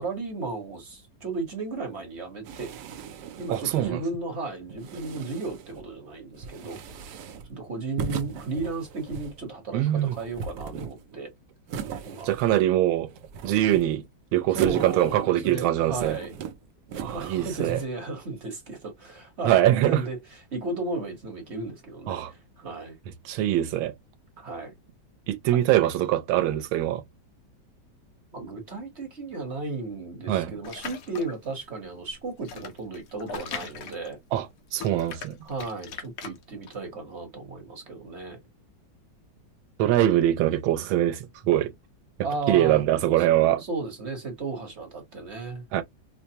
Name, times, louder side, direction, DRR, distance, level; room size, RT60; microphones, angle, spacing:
voice 1, 0.0-2.7 3.4-6.8 7.5-11.3 12.0-12.3 14.5-16.3 16.9-23.0 24.4-24.7 28.3-34.2 35.4-38.4 42.2-42.9 43.2-45.6, right 3 dB, 40° right, 1.1 m, -34 dB
sound 1, 2.4-3.9 4.7-5.8 6.4-7.5 8.0-9.4 10.0-11.2 11.7-12.8 13.1-14.1 14.5-15.5 15.8-16.6 16.9-17.9, right 6 dB, 70° right, 1.1 m, -38 dB
voice 2, 3.5-4.0 9.7-10.1 12.2-13.1 13.4-14.0 14.3-16.2 17.0-17.8 19.4-20.0 22.1-22.3 23.3-23.9 25.3-27.0 30.3-30.5 34.3-34.5 34.7-35.4 39.8-41.7 42.5-43.6 45.7-45.8, right 13 dB, 90° right, 1.4 m, -23 dB
sound 2, 30.6-31.5 32.1-34.5 34.7-36.7, left 6 dB, 60° left, 1.0 m, -39 dB
5.0 x 2.1 x 2.8 m
omnidirectional pair, 2.1 m